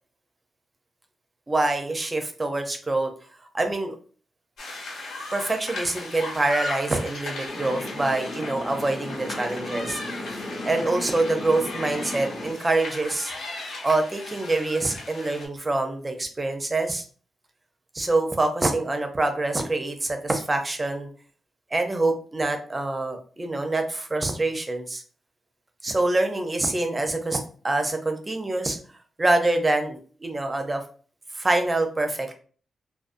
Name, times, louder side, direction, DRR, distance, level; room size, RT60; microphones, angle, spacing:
voice 1, 1.5-3.1 3.5-3.9 5.3-10.0 10.3-13.3 13.8-17.0 17.9-21.1 21.7-25.0 25.8-27.4 27.6-28.8 29.2-30.8 31.3-32.3, right 2 dB, 20° right, 4 dB, 0.5 m, -25 dB
sound 1, 4.6-15.5, left 2 dB, 80° left, 0.9 m, -37 dB
sound 2, 7.5-12.5, left 1 dB, 35° left, 0.6 m, -35 dB
2.5 x 2.2 x 2.5 m, 0.41 s
cardioid pair, 110°, 0 cm